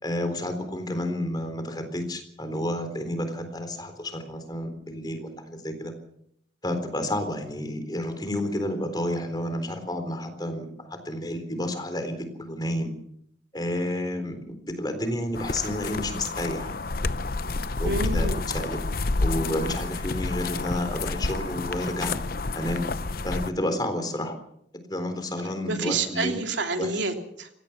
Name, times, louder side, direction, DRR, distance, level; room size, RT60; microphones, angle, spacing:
voice 1, 0.0-5.9 6.6-12.9 13.5-16.7 17.8-18.3 18.5-18.8 19.2-22.2 22.5-22.8 23.2-24.4 24.9-26.4 26.8-26.9, left 1 dB, 20° left, 8 dB, 3.8 m, -30 dB
sound 1, 15.3-23.5, left 3 dB, 50° left, 0.7 m, -29 dB
voice 2, 17.8-18.4 25.7-27.5, right 3 dB, 85° right, 4 dB, 3.1 m, -28 dB
25.5 x 17.5 x 5.9 m, 0.72 s
head